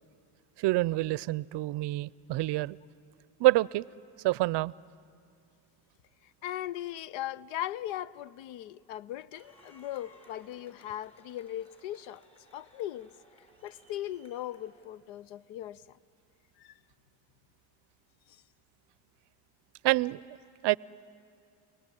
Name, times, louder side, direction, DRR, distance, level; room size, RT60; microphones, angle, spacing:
voice 1, 0.6-2.8 3.4-3.9 4.2-4.7 19.8-20.4 20.6-20.8, right 19 dB, 65° right, 0.5 m, -27 dB
voice 2, 6.4-12.2 12.5-13.1 13.6-16.0 16.6-16.7 18.3-18.4, left 12 dB, 85° left, 0.6 m, -38 dB
sound 1, 9.3-14.8, equal, 15° left, 6.2 m, -60 dB
29.5 x 19.0 x 9.7 m
supercardioid pair, 75°, 45 cm